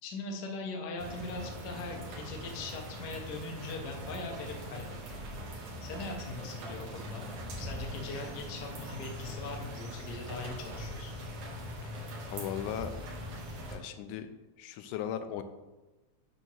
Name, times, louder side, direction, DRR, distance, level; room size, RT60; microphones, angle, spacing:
voice 1, 0.0-5.2 5.8-7.3 7.6-11.2, left 3 dB, 70° left, 1 dB, 0.9 m, -41 dB
sound 1, 1.0-13.8, equal, 75° right, 3.0 m, -41 dB
voice 2, 12.3-12.9 13.7-14.3 14.6-15.4, left 10 dB, 90° left, 9 dB, 2.2 m, -37 dB
8.7 x 2.9 x 6.2 m, 1.1 s
omnidirectional pair, 3.5 m